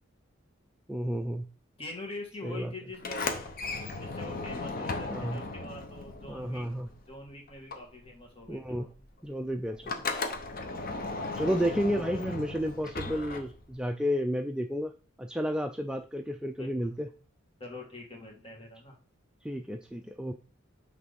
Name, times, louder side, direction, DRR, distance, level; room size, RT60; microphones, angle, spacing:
voice 1, 0.9-1.5 2.4-2.7 5.1-5.4 6.3-6.9 8.5-8.9 9.2-9.9 11.3-14.9 15.2-17.1 19.4-20.3, equal, 5° right, 5 dB, 0.3 m, -31 dB
voice 2, 1.8-3.7 4.0-6.7 7.1-8.9 16.6-17.0 17.6-19.0, left 2 dB, 30° left, 0 dB, 2.0 m, -44 dB
Sliding door, 2.9-7.2 7.5-13.9, left 3 dB, 45° left, 0.9 m, -36 dB
6.1 x 3.4 x 5.3 m, 0.38 s
head